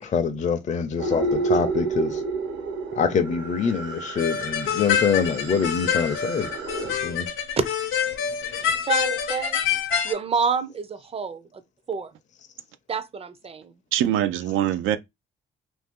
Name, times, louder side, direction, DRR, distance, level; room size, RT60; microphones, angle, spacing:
voice 1, 0.0-2.2 2.9-6.5 6.8-7.3 8.5-8.8, left 6 dB, 35° left, 0.5 m, -25 dB
sound 1, 1.0-6.9, right 3 dB, 65° right, 0.9 m, -30 dB
sound 2, 4.2-10.1, left 8 dB, 85° left, 0.7 m, -26 dB
voice 2, 8.8-9.6 10.0-11.6 11.9-12.1 12.9-13.7, right 5 dB, 30° right, 0.5 m, -27 dB
voice 3, 13.9-15.0, right 11 dB, 85° right, 0.4 m, -23 dB
2.8 x 2.6 x 3.5 m
cardioid pair, 90°, 20 cm